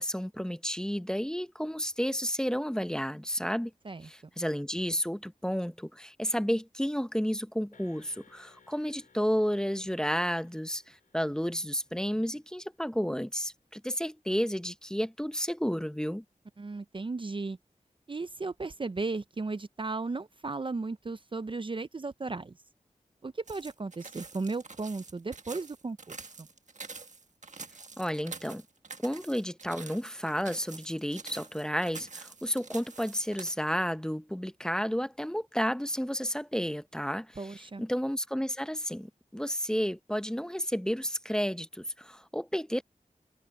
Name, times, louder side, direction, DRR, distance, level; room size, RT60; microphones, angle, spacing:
voice 1, 0.0-3.7 4.0-16.2 28.0-28.6 29.0-42.8, equal, 5° left, 0.7 m, -32 dB
sound 1, 7.7-12.6, left 5 dB, 85° left, 4.4 m, -63 dB
voice 2, 16.6-17.6 18.1-22.6 23.2-26.0 26.4-26.5 37.4-37.8, right 3 dB, 40° right, 0.5 m, -35 dB
sound 2, 23.5-33.5, right 4 dB, 60° right, 1.4 m, -47 dB
wide cardioid pair, 90°, 14 cm